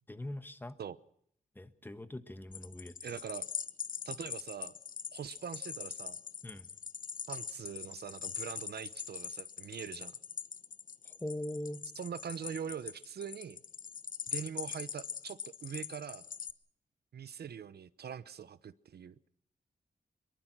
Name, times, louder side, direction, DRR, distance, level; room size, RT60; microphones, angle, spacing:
voice 1, 0.1-0.8 1.5-2.9 6.4-6.7 11.0-11.8, left 1 dB, 10° left, 10 dB, 1.3 m, -41 dB
sound 1, 2.5-16.5, left 7 dB, 50° left, 1.0 m, -42 dB
voice 2, 3.0-3.5 4.0-4.7 5.1-6.2 7.3-10.2 11.9-13.6 14.3-16.2 17.1-19.1, right 8 dB, 70° right, 15 dB, 1.0 m, -43 dB
24.0 x 22.0 x 6.2 m, 0.67 s
wide cardioid pair, 175°, 17 cm